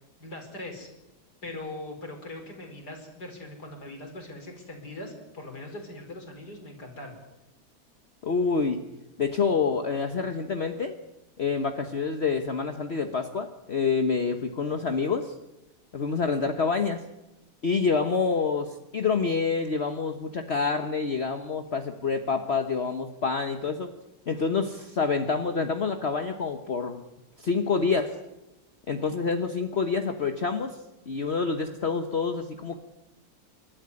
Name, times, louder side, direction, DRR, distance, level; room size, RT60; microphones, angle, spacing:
voice 1, 0.2-0.9 1.4-7.2, left 2 dB, 75° left, 3 dB, 5.6 m, -41 dB
voice 2, 8.2-8.8 9.2-11.0 11.4-15.3 15.9-17.0 17.6-23.9 24.3-27.1 27.4-28.1 28.9-30.8 31.1-32.8, left 5 dB, 40° left, 6 dB, 1.3 m, -27 dB
28.5 x 13.0 x 9.8 m, 0.97 s
omnidirectional pair, 1.8 m